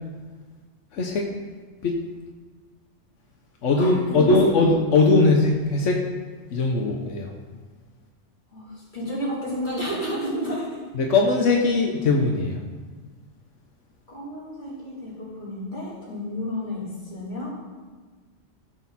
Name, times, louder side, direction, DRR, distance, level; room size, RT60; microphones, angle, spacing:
voice 1, 0.9-1.3 1.8-1.9 3.6-6.0 6.5-7.3 10.9-12.6, left 3 dB, 90° left, 1 dB, 1.3 m, -20 dB
voice 2, 3.7-4.5 8.5-10.8 14.1-17.5, left 1 dB, 40° left, -8 dB, 4.1 m, -31 dB
15.0 x 6.4 x 4.2 m, 1.4 s
omnidirectional pair, 1.2 m